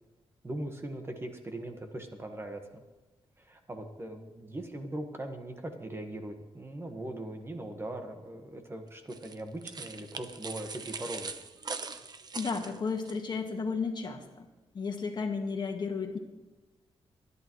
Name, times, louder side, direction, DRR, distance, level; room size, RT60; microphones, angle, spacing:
voice 1, 0.4-2.8 3.4-11.3, right 1 dB, 25° right, 4 dB, 1.4 m, -40 dB
sound 1, 9.1-13.2, right 4 dB, 40° right, 0.7 m, -41 dB
voice 2, 12.3-14.5 14.7-16.2, left 4 dB, 45° left, 3 dB, 1.6 m, -33 dB
24.0 x 11.0 x 3.1 m, 1.2 s
wide cardioid pair, 125°, 10 cm